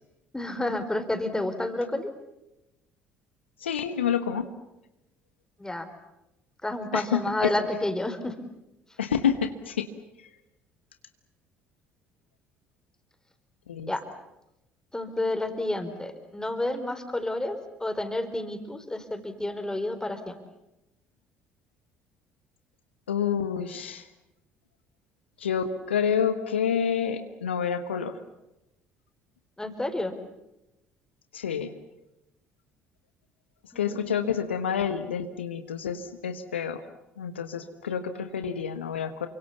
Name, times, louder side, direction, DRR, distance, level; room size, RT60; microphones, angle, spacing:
voice 1, 0.3-2.1 5.6-5.9 6.6-8.3 13.9-14.0 14.9-20.4 29.6-30.1 33.7-34.1, left 1 dB, 10° left, 9 dB, 4.3 m, -30 dB
voice 2, 3.6-4.5 6.9-7.5 9.0-9.9 10.2-10.3 13.7-13.9 23.1-24.1 25.4-28.2 31.3-31.7 33.7-36.8 37.2-39.3, left 7 dB, 80° left, 9 dB, 1.4 m, -28 dB
29.0 x 24.5 x 7.1 m, 0.92 s
figure-of-eight pair, 55°, 6 cm